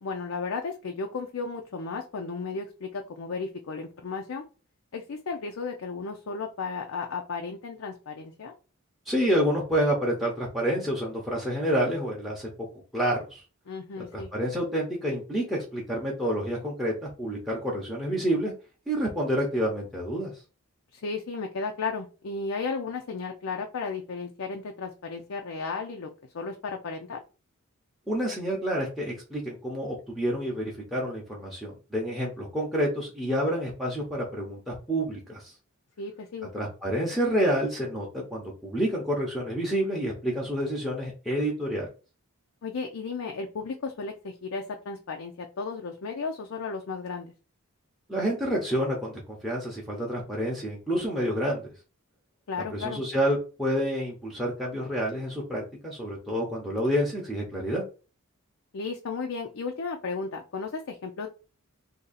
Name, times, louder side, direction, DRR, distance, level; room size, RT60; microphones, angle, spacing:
voice 1, 0.0-4.4 4.9-8.5 13.7-14.3 20.9-26.1 26.3-27.2 36.0-36.5 42.6-47.3 52.5-53.0 58.7-61.3, left 4 dB, 70° left, 2 dB, 0.5 m, -34 dB
voice 2, 9.1-12.5 12.9-13.4 14.0-18.5 18.9-20.3 28.1-35.5 36.5-41.9 48.1-51.7 52.7-57.8, equal, ahead, -2 dB, 0.7 m, -28 dB
2.8 x 2.6 x 4.0 m, 0.33 s
head